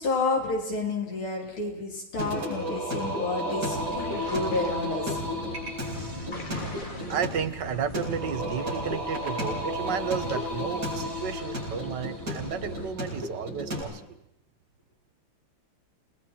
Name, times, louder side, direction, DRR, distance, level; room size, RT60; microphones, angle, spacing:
voice 1, 0.0-5.2, left 3 dB, 75° left, 1 dB, 4.1 m, -30 dB
Singing, 2.2-13.8, equal, 40° right, 7.7 m, -33 dB
sound 1, 3.7-12.9, left 1 dB, 20° left, 2.6 m, -42 dB
voice 2, 7.1-14.2, right 7 dB, 60° right, 10 dB, 1.6 m, -32 dB
30.0 x 20.5 x 4.3 m, 0.83 s
omnidirectional pair, 2.4 m